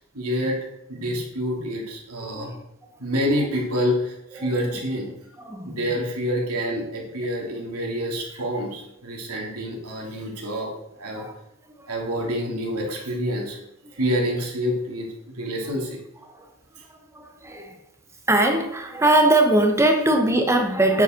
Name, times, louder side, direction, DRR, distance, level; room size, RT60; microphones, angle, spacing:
voice 1, 0.1-0.6 0.9-2.5 3.0-5.1 5.7-10.7 11.0-11.2 11.9-13.6 14.0-15.1 15.3-16.0, equal, 90° right, -1 dB, 3.1 m, -27 dB
voice 2, 2.2-2.6 4.4-4.7 5.4-5.8 7.4-7.5 11.1-11.3 12.2-12.3 16.9-17.8 18.3-21.0, right 1 dB, 15° right, 3 dB, 1.0 m, -21 dB
9.4 x 7.9 x 4.6 m, 0.81 s
head